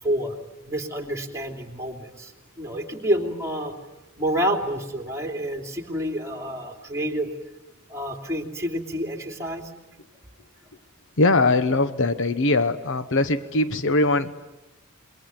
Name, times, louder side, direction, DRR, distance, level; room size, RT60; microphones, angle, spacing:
voice 1, 0.0-0.4 0.6-3.7 4.2-7.3 7.9-9.7, equal, 15° right, 3 dB, 3.1 m, -28 dB
voice 2, 11.2-14.4, left 2 dB, 60° left, 12 dB, 1.0 m, -21 dB
27.5 x 22.5 x 9.5 m, 1.0 s
head